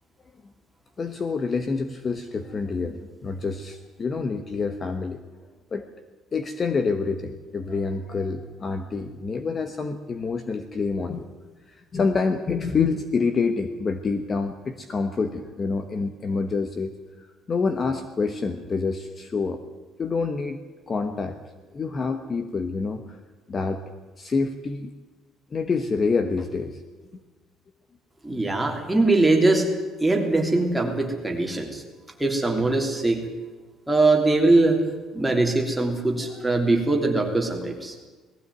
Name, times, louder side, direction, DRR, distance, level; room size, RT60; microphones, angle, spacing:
voice 1, 1.0-5.2 5.7-5.8 6.3-11.3 11.7-16.9 17.2-19.6 20.0-20.6 20.9-21.4 21.7-23.2 23.5-23.8 24.2-24.9 25.5-26.8 36.3-36.4, left 4 dB, 30° left, 8 dB, 1.2 m, -27 dB
voice 2, 28.2-29.7 30.0-31.8 32.2-33.2 33.9-34.8 35.1-37.9, right 2 dB, 5° right, 1 dB, 3.2 m, -21 dB
19.0 x 15.0 x 9.5 m, 1.3 s
cardioid pair, 140°, 0 cm